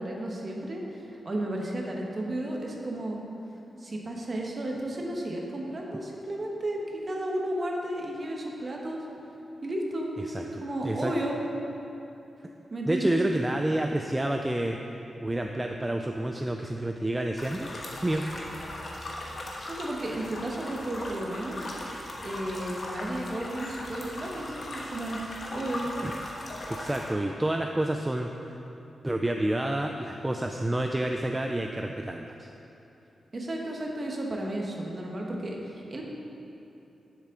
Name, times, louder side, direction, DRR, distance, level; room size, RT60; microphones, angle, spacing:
voice 1, 0.0-3.2 3.8-9.0 9.6-10.1 10.4-11.4 12.7-13.2 19.6-21.6 22.2-25.2 25.5-25.9 33.3-36.0, right 1 dB, 35° right, -1 dB, 1.2 m, -33 dB
voice 2, 10.3-11.1 12.9-14.8 15.2-17.7 18.0-18.3 26.0-26.1 26.7-28.3 29.0-32.5, right 1 dB, 15° right, 3 dB, 0.3 m, -29 dB
sound 1, 17.4-27.1, left 1 dB, 45° left, 1.2 m, -38 dB
10.5 x 7.4 x 3.8 m, 2.9 s
wide cardioid pair, 135°, 0 cm